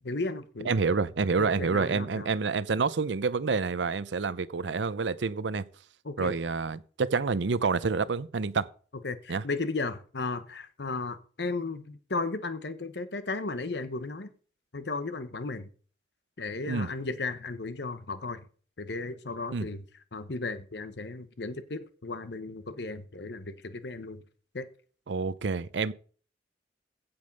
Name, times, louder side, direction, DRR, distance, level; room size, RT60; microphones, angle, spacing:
voice 1, 0.0-0.7 1.4-2.3 6.0-6.3 9.0-14.3 14.7-15.7 16.4-18.4 18.8-19.8 20.1-24.2 24.5-24.7, left 3 dB, 70° left, 1.0 m, -35 dB
voice 2, 0.7-5.6 6.2-8.6 9.3-9.4 16.7-16.9 19.5-19.7 25.1-25.9, right 4 dB, 85° right, 0.6 m, -28 dB
16.0 x 5.3 x 5.3 m
head